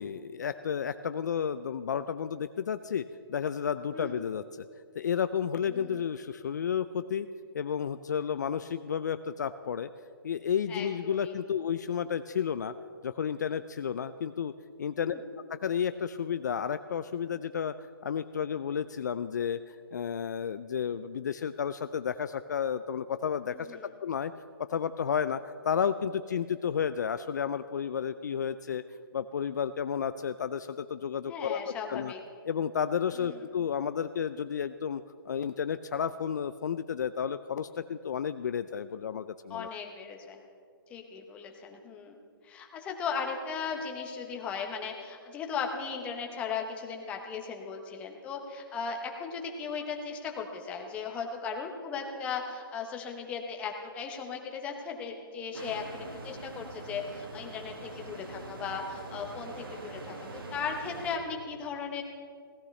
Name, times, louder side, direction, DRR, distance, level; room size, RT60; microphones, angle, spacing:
voice 1, 0.0-4.7 5.0-7.3 7.5-9.9 10.2-12.7 13.0-14.5 14.8-15.1 15.5-17.7 18.0-24.3 24.7-28.8 29.1-31.6 31.9-32.1 32.5-39.7, left 7 dB, 50° left, 11 dB, 0.4 m, -32 dB
voice 2, 10.7-11.3 14.9-15.2 23.5-23.8 31.3-32.2 33.1-33.4 39.5-40.4 40.9-42.2 42.4-60.2 60.5-62.0, left 5 dB, 10° left, 2 dB, 0.8 m, -37 dB
sound 1, 55.5-61.2, right 2 dB, 70° right, 1.9 m, -43 dB
17.0 x 13.0 x 3.2 m, 2.2 s
hypercardioid pair, 165°, 12 cm